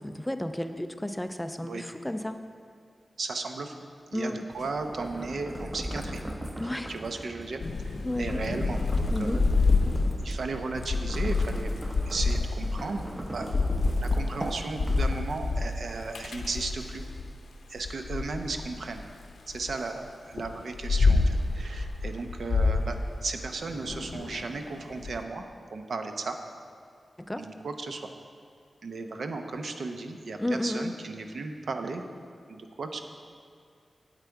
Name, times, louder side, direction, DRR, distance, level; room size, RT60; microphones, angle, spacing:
voice 1, 0.0-2.4 4.1-4.4 6.6-6.9 8.0-8.4 9.1-9.4 27.3-27.5 30.4-30.9, left 1 dB, 5° left, 8 dB, 0.3 m, -32 dB
voice 2, 3.2-3.9 4.1-6.2 6.7-9.4 10.2-11.7 12.0-13.5 14.0-17.0 17.7-19.1 19.5-25.5 25.7-26.4 27.4-28.1 28.8-32.0 32.5-33.0, right 3 dB, 65° right, 6 dB, 0.7 m, -35 dB
sound 1, 4.5-15.5, equal, 20° right, 0.7 m, -39 dB
Thunder / Rain, 7.6-17.3 17.8-19.7 20.3-25.1, left 3 dB, 85° left, 0.6 m, -28 dB
8.9 x 8.2 x 4.6 m, 2.3 s
wide cardioid pair, 150°, 0 cm